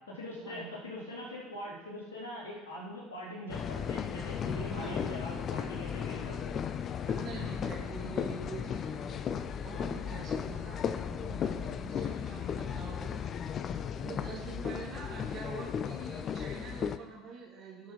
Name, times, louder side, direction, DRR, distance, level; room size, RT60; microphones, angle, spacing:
voice 1, 0.1-6.6, equal, 65° left, -7 dB, 3.8 m, -42 dB
sound 1, 3.5-17.0, left 8 dB, 35° left, 0.5 m, -35 dB
voice 2, 4.7-5.1 7.0-13.2 13.9-17.9, right 5 dB, 40° right, -2 dB, 3.1 m, -45 dB
17.0 x 6.6 x 4.6 m, 1.2 s
figure-of-eight pair, 70°, 0 cm